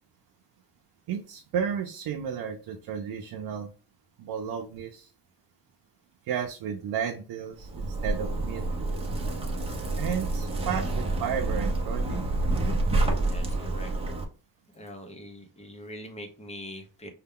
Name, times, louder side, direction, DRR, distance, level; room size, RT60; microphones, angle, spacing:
voice 1, 1.1-3.7 4.2-5.1 6.3-8.6 10.0-12.3, right 8 dB, 70° right, 3 dB, 0.6 m, -33 dB
Zipper (clothing), 7.6-14.2, right 2 dB, 15° right, 0.7 m, -28 dB
voice 2, 13.2-13.9 14.7-17.1, equal, 15° left, 5 dB, 0.7 m, -42 dB
5.5 x 2.2 x 3.6 m, 0.34 s
cardioid pair, 175°, 38 cm